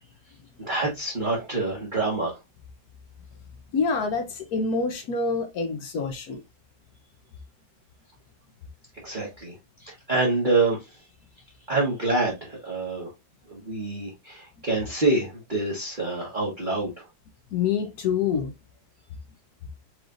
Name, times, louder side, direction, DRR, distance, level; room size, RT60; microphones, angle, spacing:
voice 1, 0.6-2.4 9.0-11.0 11.7-13.1 13.5-17.1, right 3 dB, 30° right, 1.1 m, -26 dB
voice 2, 3.7-6.4 17.5-18.5, left 5 dB, 60° left, 1.1 m, -26 dB
4.9 x 3.2 x 2.5 m
omnidirectional pair, 2.1 m